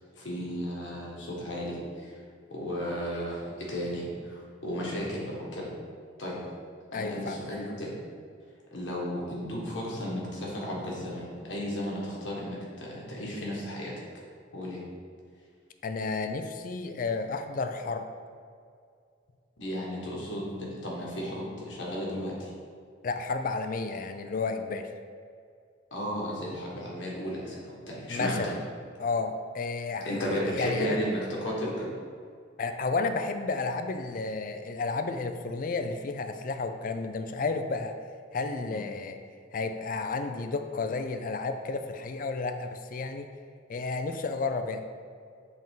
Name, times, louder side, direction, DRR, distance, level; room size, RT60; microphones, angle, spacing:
voice 1, 0.2-2.1 2.5-5.7 6.2-6.4 6.9-8.0 8.7-14.0 14.5-14.8 19.6-22.5 25.9-28.6 30.0-31.9 38.7-38.8, equal, 85° left, -4 dB, 1.5 m, -34 dB
voice 2, 6.9-7.4 15.8-18.1 23.0-24.9 28.1-28.6 29.0-30.1 30.4-31.0 32.6-37.9 38.3-39.2 39.5-43.3 43.7-44.8, left 3 dB, 45° left, 8 dB, 0.4 m, -32 dB
7.6 x 3.6 x 3.7 m, 2.3 s
head